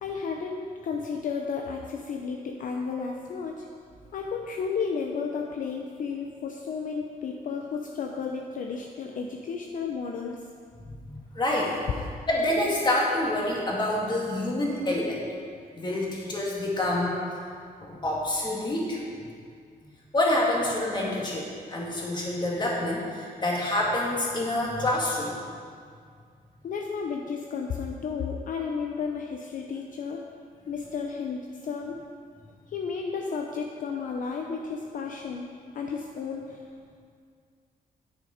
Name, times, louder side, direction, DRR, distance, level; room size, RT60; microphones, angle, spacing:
voice 1, 0.0-3.6 4.1-10.4 26.6-30.2 30.7-32.0 32.7-35.5 35.7-36.6, left 5 dB, 60° left, 1 dB, 0.7 m, -33 dB
voice 2, 10.8-11.8 12.3-15.2 15.7-17.2 17.8-19.0 20.1-25.4, left 1 dB, 30° left, -3 dB, 2.0 m, -27 dB
9.5 x 6.8 x 5.0 m, 2.2 s
cardioid pair, 120°, 16 cm